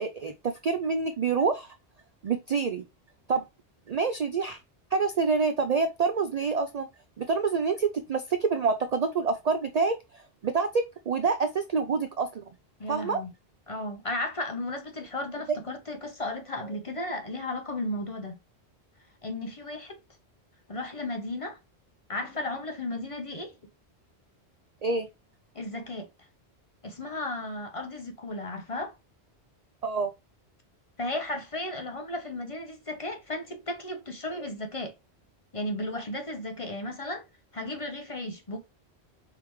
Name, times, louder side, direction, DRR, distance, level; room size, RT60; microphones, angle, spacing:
voice 1, 0.0-1.7 2.2-2.8 3.3-3.4 3.9-4.6 4.9-6.9 7.2-10.0 10.4-12.4 12.9-13.2 24.8-25.1 29.8-30.1, right 4 dB, 55° right, 0.4 m, -27 dB
voice 2, 12.8-13.3 13.7-18.4 19.2-20.0 20.7-21.6 22.1-23.5 25.5-26.1 26.8-28.9 31.0-34.9 35.5-37.2 37.5-38.6, left 1 dB, 35° left, 0.8 m, -34 dB
4.7 x 3.5 x 3.1 m
omnidirectional pair, 1.1 m